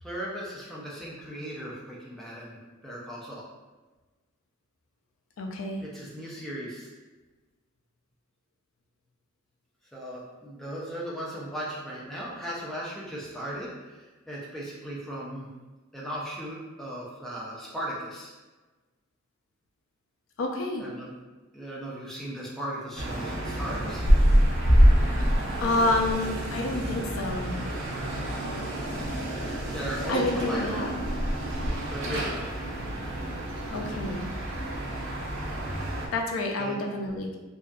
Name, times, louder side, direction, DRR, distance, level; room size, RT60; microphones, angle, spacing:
voice 1, 0.0-3.4 5.8-6.9 9.9-15.5 15.9-18.3 20.8-21.1 21.5-24.0 29.7-30.9 31.9-32.6 36.6-36.8, right 1 dB, ahead, -6 dB, 0.4 m, -37 dB
voice 2, 5.4-5.8 20.4-20.9 25.6-27.5 30.1-30.9 33.7-34.2 36.1-37.4, left 2 dB, 75° left, 1 dB, 0.4 m, -28 dB
sound 1, 23.0-36.1, equal, 65° right, 0.5 m, -26 dB
2.6 x 2.3 x 2.2 m, 1.2 s
head